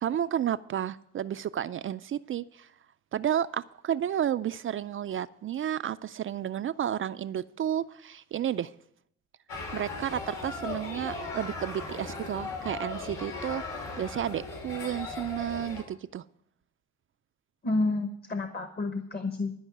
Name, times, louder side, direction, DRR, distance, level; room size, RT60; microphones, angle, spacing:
voice 1, 0.0-2.7 3.1-8.7 9.7-13.6 14.0-16.2, right 10 dB, 45° right, 0.4 m, -31 dB
sound 1, 9.5-15.8, left 3 dB, 85° left, 3.4 m, -38 dB
voice 2, 17.6-19.5, left 2 dB, 30° left, 1.1 m, -30 dB
12.0 x 5.5 x 9.1 m
cardioid pair, 90°, 30 cm